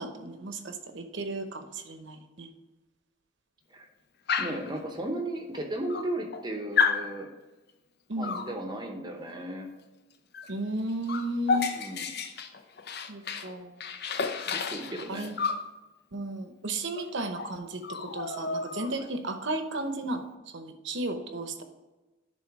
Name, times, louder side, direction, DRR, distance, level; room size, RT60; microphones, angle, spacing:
voice 1, 0.0-2.5 8.1-8.4 10.5-11.7 13.1-13.8 15.1-15.4 16.1-20.3 20.5-21.6, right 1 dB, 65° right, 7 dB, 0.9 m, -34 dB
Dog, 4.3-4.7 5.5-5.6 5.9-6.4 6.8-7.1 8.2-8.5 10.3-10.5 10.8-13.5 13.8-15.7 16.9-17.1 17.4-17.5 17.8-19.1, left 5 dB, 55° left, 0.6 m, -31 dB
voice 2, 4.4-7.3 8.2-9.7 11.7-12.1 14.5-15.3, right 1 dB, 20° right, 3 dB, 0.8 m, -35 dB
11.0 x 3.7 x 4.7 m, 1.1 s
head